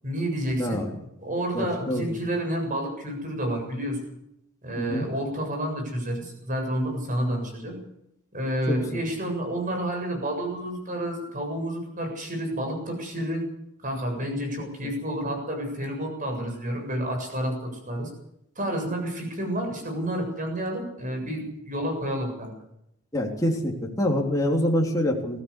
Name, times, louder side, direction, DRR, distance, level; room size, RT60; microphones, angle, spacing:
voice 1, 0.0-0.8 1.2-4.0 4.6-7.8 8.3-13.4 13.8-18.1 18.6-22.5, right 1 dB, 35° right, 3 dB, 7.5 m, -30 dB
voice 2, 0.6-0.9 1.5-2.2 4.8-5.1 8.7-8.8 23.1-25.4, left 1 dB, 15° left, -1 dB, 3.4 m, -26 dB
21.0 x 16.0 x 8.3 m, 0.79 s
head